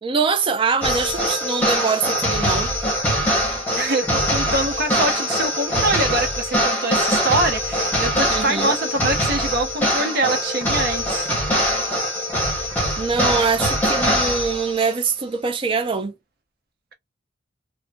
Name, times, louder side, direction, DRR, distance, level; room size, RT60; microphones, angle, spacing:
voice 1, 0.0-2.7 8.3-8.8 13.0-16.1, right 5 dB, 25° right, 0.4 m, -23 dB
sound 1, 0.8-14.9, equal, 10° left, 0.9 m, -22 dB
voice 2, 3.7-11.3, right 2 dB, 50° right, 0.8 m, -24 dB
3.1 x 2.1 x 2.2 m
head